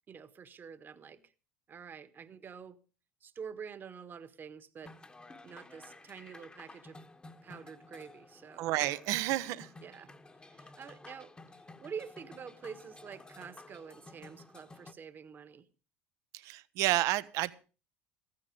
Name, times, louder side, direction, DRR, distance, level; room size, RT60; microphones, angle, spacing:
voice 1, 0.1-1.2 1.7-2.8 3.2-4.9 5.4-7.0 7.4-8.7 9.8-10.1 10.4-11.3 11.8-15.7, right 6 dB, 35° right, 1.4 m, -47 dB
sound 1, 4.8-14.9, left 2 dB, 15° left, 1.3 m, -53 dB
voice 2, 8.6-9.7 16.3-17.5, right 16 dB, 60° right, 0.9 m, -30 dB
15.0 x 13.0 x 5.2 m
hypercardioid pair, 80°, 6 cm